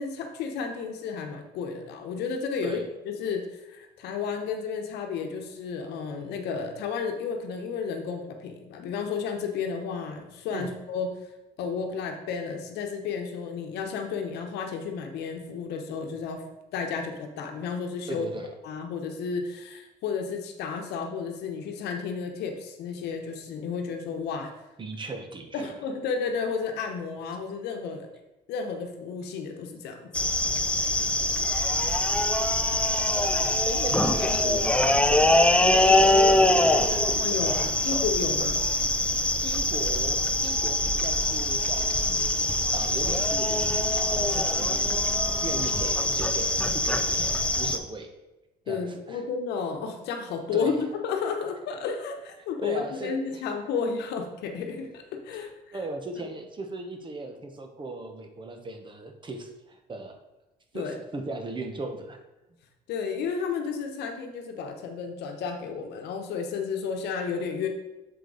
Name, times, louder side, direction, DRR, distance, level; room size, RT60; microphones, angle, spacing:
voice 1, 0.0-2.8 3.1-11.1 11.6-16.4 16.7-18.3 18.6-24.5 25.5-28.1 28.5-30.1 30.9-31.1 37.1-38.6 42.2-42.3 48.7-50.7 51.0-55.8 56.2-56.3 60.7-61.0 62.9-67.7, left 5 dB, 80° left, 4 dB, 1.0 m, -32 dB
voice 2, 18.1-18.5 24.8-25.7 31.4-31.6 32.0-32.6 33.0-38.0 38.4-38.5 39.4-42.1 42.7-43.6 43.9-45.0 45.4-48.1 48.7-49.2 50.5-50.8 52.6-53.4 55.4-60.2 60.7-62.2, right 2 dB, 30° right, 5 dB, 0.9 m, -38 dB
sound 1, 30.1-47.8, left 1 dB, 5° left, 0.5 m, -24 dB
6.6 x 4.9 x 4.0 m, 1.0 s
cardioid pair, 110°, 17 cm